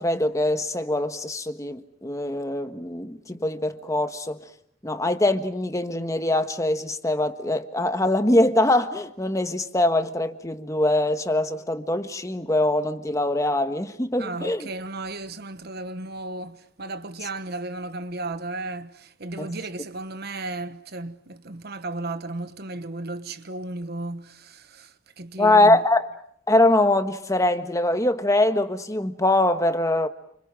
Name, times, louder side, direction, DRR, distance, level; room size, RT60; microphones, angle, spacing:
voice 1, 0.0-4.4 4.8-14.7 19.4-19.5 25.4-26.1 26.5-30.1, left 1 dB, 15° left, 1.4 m, -23 dB
voice 2, 14.2-25.8, right 2 dB, 55° right, 1.2 m, -34 dB
29.5 x 26.5 x 7.6 m
head